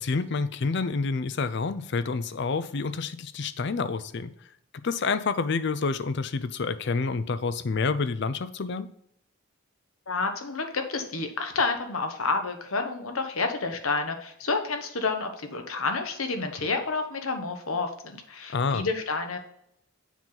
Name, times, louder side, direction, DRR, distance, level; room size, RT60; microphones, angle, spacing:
voice 1, 0.0-4.3 4.8-8.9 18.5-18.8, left 4 dB, 55° left, 13 dB, 0.5 m, -28 dB
voice 2, 10.1-19.4, left 4 dB, 80° left, 5 dB, 1.2 m, -29 dB
7.2 x 5.8 x 3.9 m, 0.72 s
head